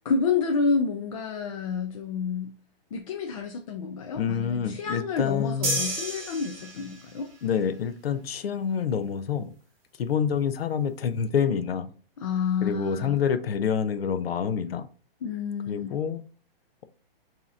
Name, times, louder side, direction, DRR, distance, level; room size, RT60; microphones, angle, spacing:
voice 1, 0.0-2.5 2.9-7.3 12.2-13.2 15.2-15.9, left 5 dB, 35° left, 3 dB, 0.4 m, -29 dB
voice 2, 4.2-5.9 7.4-9.5 10.0-11.9 12.6-14.9 15.7-16.2, left 7 dB, 85° left, 10 dB, 0.7 m, -27 dB
sound 1, 5.6-7.2, right 1 dB, 25° right, 1.1 m, -31 dB
7.2 x 2.9 x 2.5 m, 0.41 s
hypercardioid pair, 160°, 29 cm